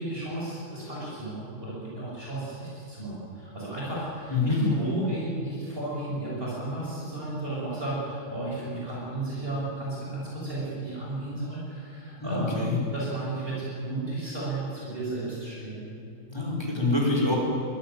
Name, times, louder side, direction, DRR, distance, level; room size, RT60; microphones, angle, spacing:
voice 1, 0.0-15.8, right 2 dB, 35° right, -6 dB, 7.9 m, -33 dB
voice 2, 4.3-4.6 12.2-12.8 16.3-17.4, left 2 dB, 15° left, -2 dB, 5.4 m, -26 dB
22.5 x 17.5 x 9.4 m, 2.6 s
omnidirectional pair, 1.6 m